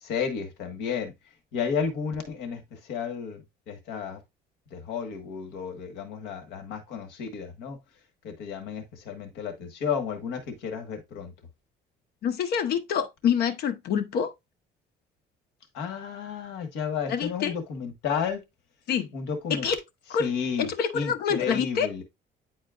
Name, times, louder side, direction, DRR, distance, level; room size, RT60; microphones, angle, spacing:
voice 1, 0.0-1.1 1.5-4.2 4.7-7.8 8.2-11.3 15.7-18.4 19.1-19.7 20.2-20.7 20.9-22.0, left 6 dB, 85° left, 1.6 m, -32 dB
voice 2, 12.2-14.3 17.1-17.5 18.9-19.1 19.5-19.8 20.1-20.3 20.6-21.9, left 7 dB, 70° left, 1.0 m, -26 dB
9.5 x 4.3 x 2.4 m
cardioid pair, 110°, 17 cm